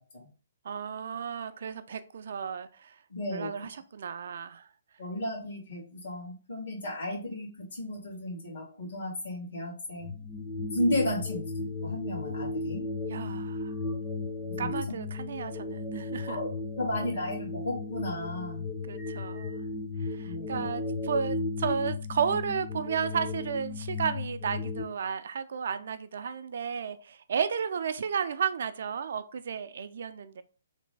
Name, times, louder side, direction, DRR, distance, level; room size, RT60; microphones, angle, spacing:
voice 1, 0.7-3.0 3.3-4.7 13.1-13.7 14.6-16.4 18.9-19.5 20.0-30.4, right 7 dB, 60° right, 0.3 m, -33 dB
voice 2, 3.1-3.8 5.0-10.1 10.7-12.8 14.6-14.7 16.3-16.5 16.8-18.6 20.2-20.6, left 1 dB, 65° left, 1.7 m, -34 dB
sound 1, 10.0-24.8, left 3 dB, 20° left, 0.6 m, -35 dB
3.2 x 2.2 x 3.2 m
hypercardioid pair, 140°, 0 cm